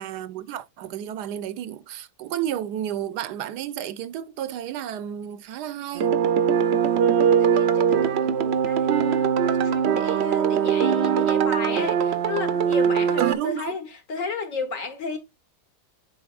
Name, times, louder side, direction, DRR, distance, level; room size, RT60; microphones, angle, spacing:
voice 1, 0.0-6.2 13.2-13.7, right 11 dB, 80° right, 1.2 m, -31 dB
sound 1, 6.0-13.4, right 8 dB, 60° right, 0.7 m, -21 dB
voice 2, 6.4-15.2, left 4 dB, 55° left, 1.5 m, -34 dB
10.0 x 4.2 x 2.4 m
omnidirectional pair, 1.7 m